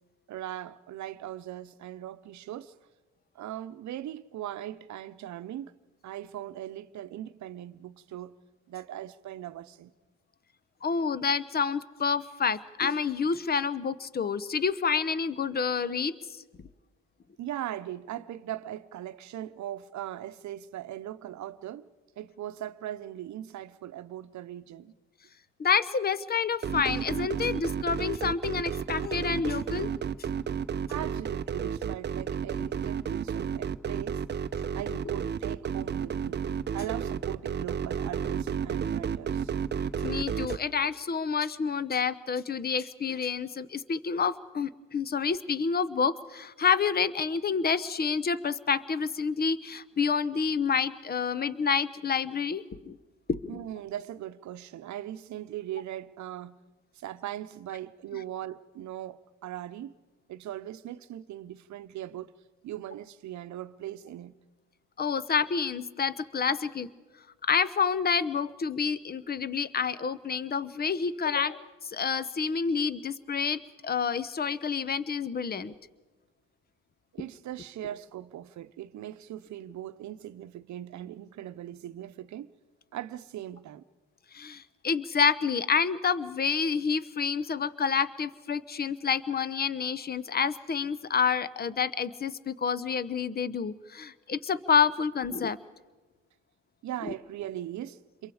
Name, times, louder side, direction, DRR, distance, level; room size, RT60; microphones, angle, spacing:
voice 1, 0.3-2.8 3.3-5.7 6.0-8.4 8.7-9.9 17.4-21.9 22.2-24.9 30.9-34.2 34.7-36.4 36.7-39.5 53.5-56.6 56.9-59.9 60.3-62.3 62.6-64.4 77.1-82.5 82.9-83.8 96.8-98.3, right 12 dB, 70° right, 0.8 m, -39 dB
voice 2, 10.8-16.1 25.6-29.9 40.0-53.0 53.3-53.6 65.0-66.9 67.5-75.7 84.3-95.6, left 6 dB, 30° left, 0.9 m, -28 dB
sound 1, 26.6-40.6, right 7 dB, 35° right, 0.6 m, -32 dB
28.0 x 23.0 x 4.9 m
cardioid pair, 90°, 30 cm